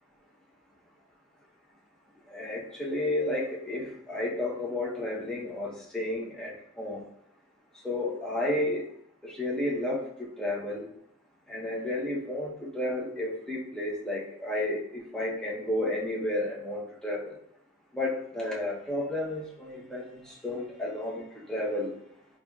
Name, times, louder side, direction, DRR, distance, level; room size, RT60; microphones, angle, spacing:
voice 1, 2.3-7.0 7.8-8.9 9.2-10.9 11.5-17.3 17.9-21.2 21.5-21.9, left 1 dB, 5° left, -4 dB, 0.7 m, -32 dB
3.8 x 2.9 x 2.3 m, 0.70 s
head